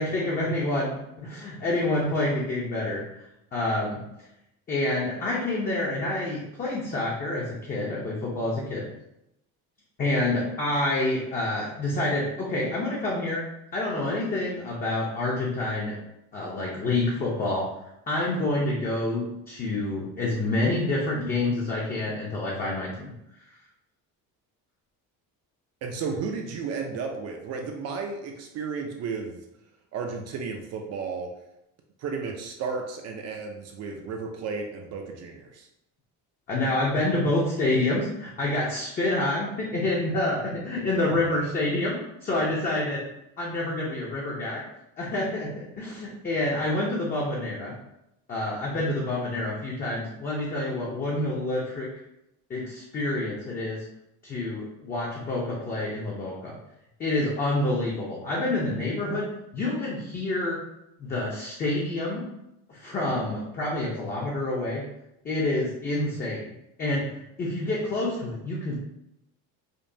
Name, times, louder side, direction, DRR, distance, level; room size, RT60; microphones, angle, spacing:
voice 1, 0.0-3.0 3.5-4.0 4.7-8.9 10.0-13.4 13.7-15.9 16.3-17.7 18.1-23.1 36.5-43.0 43.4-44.6 45.0-47.8 48.3-51.9 52.5-53.8 54.2-56.5 57.0-59.3 59.5-60.6 61.0-62.3 62.7-64.8 65.2-66.5 66.8-67.1 67.4-68.8, left 2 dB, 25° left, -4 dB, 0.6 m, -27 dB
voice 2, 25.8-29.4 29.9-31.3 32.0-35.7 41.0-41.5, right 5 dB, 45° right, 2 dB, 0.5 m, -33 dB
5.1 x 2.2 x 2.6 m, 0.85 s
cardioid pair, 165°, 36 cm